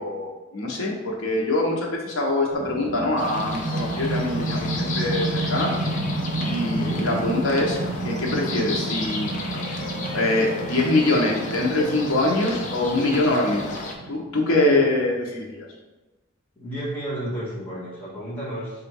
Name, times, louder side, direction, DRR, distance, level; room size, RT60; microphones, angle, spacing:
voice 1, 0.0-5.7 6.5-7.8 8.0-9.3 10.1-13.8 14.1-15.7, left 2 dB, 70° left, -2 dB, 0.9 m, -23 dB
sound 1, 2.5-14.7, right 2 dB, 55° right, 0.7 m, -31 dB
sound 2, 3.2-13.9, left 2 dB, 35° left, 0.5 m, -33 dB
voice 2, 16.5-18.9, right 1 dB, 10° left, -10 dB, 1.4 m, -32 dB
3.6 x 2.6 x 4.5 m, 1.1 s
head